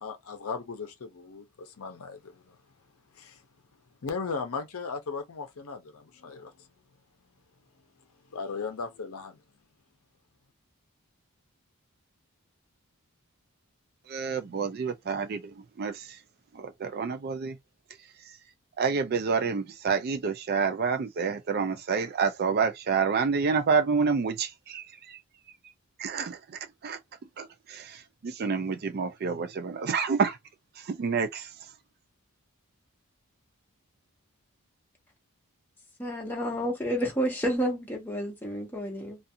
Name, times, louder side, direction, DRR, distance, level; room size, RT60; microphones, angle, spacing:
voice 1, 0.0-2.6 3.1-3.4 4.0-6.7 8.3-9.4, left 4 dB, 70° left, 0.6 m, -37 dB
voice 2, 14.1-16.2 16.5-17.6 18.8-25.2 26.0-27.0 27.4-30.4 30.8-31.5, right 5 dB, 45° right, 0.4 m, -28 dB
voice 3, 36.0-39.2, equal, 10° left, 1.0 m, -30 dB
2.4 x 2.4 x 2.7 m
head